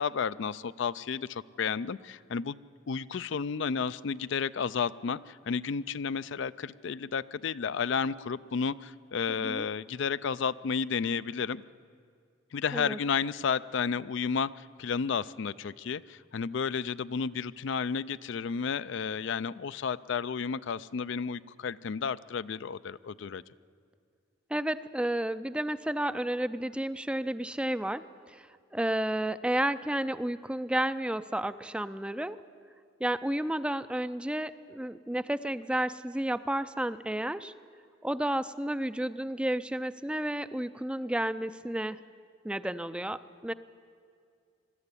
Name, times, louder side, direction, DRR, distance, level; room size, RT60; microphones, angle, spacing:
voice 1, 0.0-2.6 2.9-11.6 12.5-23.4, left 6 dB, 60° left, 16 dB, 0.4 m, -32 dB
voice 2, 24.5-32.4 33.0-37.5 38.0-42.0 42.4-43.5, right 1 dB, 5° right, 13 dB, 0.4 m, -31 dB
21.0 x 13.5 x 9.8 m, 2.3 s
head